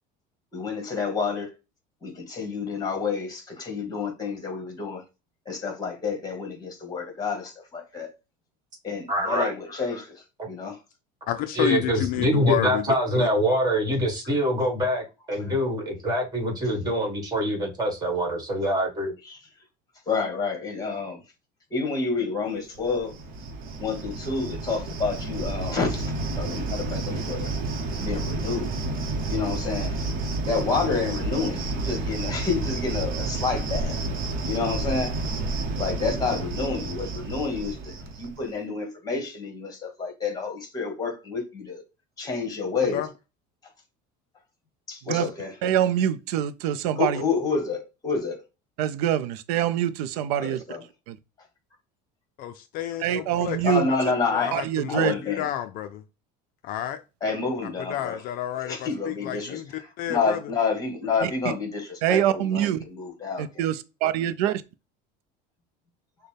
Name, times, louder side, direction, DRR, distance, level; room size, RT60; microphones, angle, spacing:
voice 1, 0.5-1.5 2.0-5.0 5.4-8.1 8.8-10.8 15.4-15.5 19.2-19.4 20.1-21.2 21.7-23.1 23.8-27.5 28.0-28.7 29.3-30.0 30.5-34.0 34.5-35.2 35.8-41.8 42.2-43.0 44.9-45.5 47.0-48.4 50.4-50.8 53.6-54.6 54.9-55.4 57.2-58.2 58.7-63.6, left 4 dB, 20° left, 1.5 m, -29 dB
voice 2, 9.1-9.5 11.6-19.1, equal, 20° right, 1.6 m, -24 dB
voice 3, 11.3-13.3 42.9-43.1 52.4-53.6 54.3-56.0 56.6-57.0 57.9-59.7 60.0-60.4, left 12 dB, 50° left, 0.4 m, -30 dB
Cricket, 22.7-38.5, right 3 dB, 50° right, 0.9 m, -30 dB
voice 4, 45.6-47.2 48.8-50.6 51.1-51.2 53.0-53.9 54.5-55.1 61.2-61.3 62.0-62.8 63.4-64.6, right 10 dB, 90° right, 0.5 m, -25 dB
6.4 x 2.2 x 3.3 m
cardioid pair, 145°, 19 cm